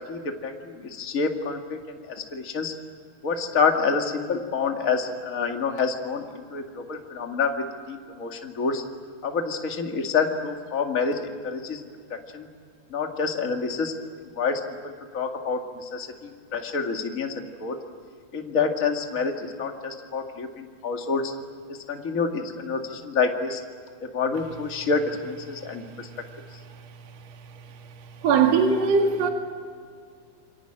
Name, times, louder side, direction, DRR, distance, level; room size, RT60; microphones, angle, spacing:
voice 1, 0.0-2.7 3.2-8.8 9.2-11.8 12.1-12.5 12.9-14.0 14.4-17.8 18.3-21.3 21.7-23.6 24.0-26.1, left 5 dB, 30° left, 3 dB, 1.9 m, -28 dB
voice 2, 28.2-29.3, right 5 dB, 50° right, 3 dB, 2.8 m, -20 dB
27.5 x 24.0 x 9.0 m, 2.1 s
omnidirectional pair, 4.4 m